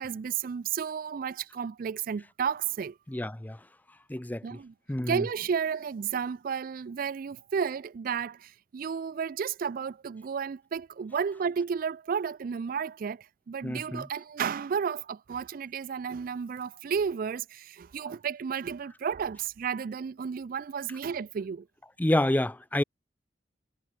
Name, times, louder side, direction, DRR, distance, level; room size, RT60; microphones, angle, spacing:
voice 1, 0.0-3.0 4.4-4.7 5.1-21.7, right 6 dB, 50° right, 0.4 m, -32 dB
voice 2, 3.1-3.6 4.1-4.6 4.9-5.2 13.6-14.1 22.0-22.8, left 1 dB, 10° left, 0.5 m, -28 dB
head